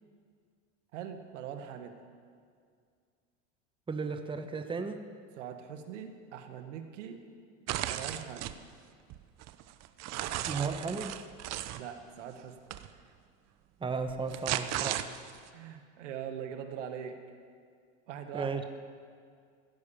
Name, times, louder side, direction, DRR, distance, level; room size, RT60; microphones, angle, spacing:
voice 1, 0.9-2.0 5.4-7.2 7.8-8.5 11.8-12.5 12.9-13.0 15.5-17.2 18.1-18.6, right 8 dB, 75° right, 7 dB, 1.5 m, -42 dB
voice 2, 3.9-5.0 10.5-11.2 13.8-15.1 18.3-18.6, right 4 dB, 15° right, 8 dB, 1.0 m, -34 dB
sound 1, 7.7-8.6 9.1-11.8 12.7-12.9 14.1-15.5, right 13 dB, 45° right, 0.8 m, -35 dB
16.0 x 9.8 x 7.3 m, 2.1 s
hypercardioid pair, 90°, 36 cm